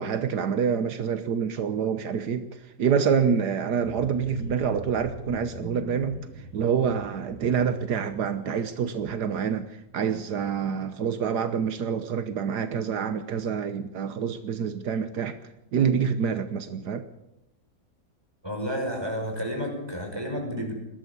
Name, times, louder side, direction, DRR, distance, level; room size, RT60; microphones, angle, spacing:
voice 1, 0.0-15.4 15.7-17.0, right 7 dB, 80° right, 10 dB, 1.6 m, -27 dB
sound 1, 3.7-9.5 9.9-10.1 10.4-10.5, left 1 dB, 55° left, 3.0 m, -43 dB
voice 2, 18.4-20.7, equal, 15° right, 2 dB, 5.5 m, -31 dB
20.5 x 13.0 x 9.8 m, 0.88 s
omnidirectional pair, 1.8 m